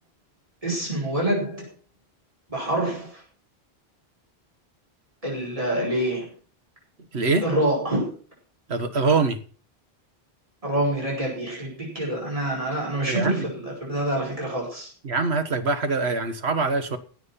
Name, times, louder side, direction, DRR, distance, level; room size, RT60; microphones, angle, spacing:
voice 1, 0.6-1.6 2.5-3.2 5.2-6.3 7.4-8.2 10.6-14.9, right 1 dB, 35° right, -3 dB, 5.4 m, -26 dB
voice 2, 7.1-7.4 8.7-9.4 13.0-13.5 15.0-17.0, right 3 dB, 90° right, 9 dB, 1.8 m, -23 dB
17.0 x 8.1 x 5.8 m, 0.40 s
omnidirectional pair, 1.1 m